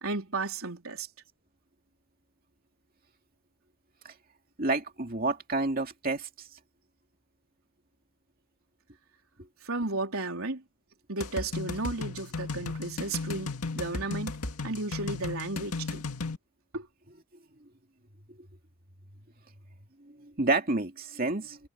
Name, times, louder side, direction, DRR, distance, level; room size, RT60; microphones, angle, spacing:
voice 1, 0.0-1.1 9.6-10.6 11.1-16.0 16.7-16.9, right 3 dB, 70° right, 3.8 m, -34 dB
voice 2, 4.6-6.5 20.2-21.6, right 2 dB, 40° right, 2.5 m, -29 dB
sound 1, 11.2-16.4, left 3 dB, 90° left, 2.1 m, -35 dB
head